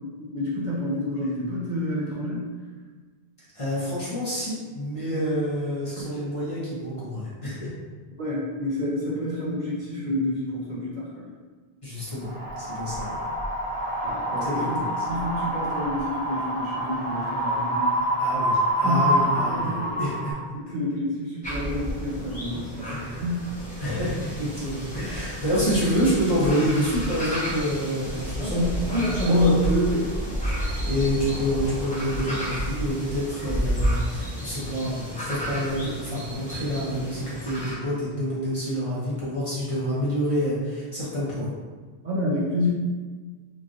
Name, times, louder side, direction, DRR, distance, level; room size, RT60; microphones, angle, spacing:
voice 1, 0.0-2.5 8.2-11.3 14.0-14.8 15.1-17.9 18.8-19.9 20.5-23.5 28.4-29.7 42.0-42.7, left 1 dB, 55° right, -6 dB, 0.6 m, -28 dB
voice 2, 3.5-7.7 11.8-13.1 14.4-15.2 18.2-20.3 22.9-23.3 23.8-28.6 29.3-41.5, equal, 35° left, -9 dB, 0.8 m, -28 dB
Wind, 12.2-20.3, equal, 15° right, 0.4 m, -27 dB
sound 1, 21.4-37.7, equal, 10° left, 0.9 m, -31 dB
3.0 x 2.4 x 2.5 m, 1.4 s
omnidirectional pair, 1.0 m